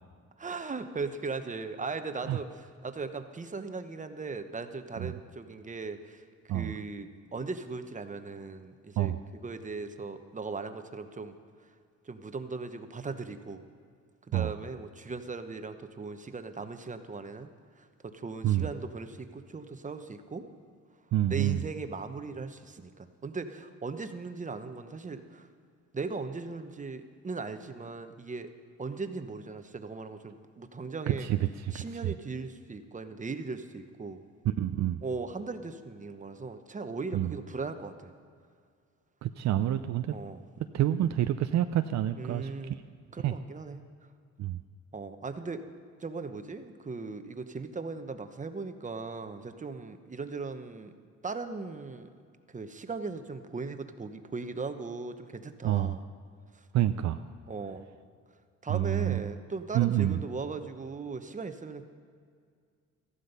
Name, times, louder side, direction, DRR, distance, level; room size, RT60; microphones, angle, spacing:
voice 1, 0.4-6.2 6.5-9.1 9.4-11.3 12.0-13.6 14.3-17.5 17.8-20.5 21.3-25.5 25.9-28.5 28.8-31.3 31.7-34.2 35.0-38.1 40.1-40.4 42.2-42.7 43.1-43.8 44.9-45.6 46.0-50.9 51.2-52.1 52.5-56.0 56.5-56.6 57.5-57.8 58.6-61.8, right 4 dB, 25° right, 8 dB, 1.0 m, -38 dB
voice 2, 21.1-21.6 31.1-32.1 34.4-35.0 37.1-37.3 39.2-40.1 40.7-42.5 43.2-43.4 44.4-44.6 55.6-56.0 56.7-57.2 58.7-59.2 59.7-60.2, right 12 dB, 65° right, 9 dB, 0.5 m, -28 dB
14.5 x 12.0 x 5.5 m, 2.1 s
cardioid pair, 90°, 30 cm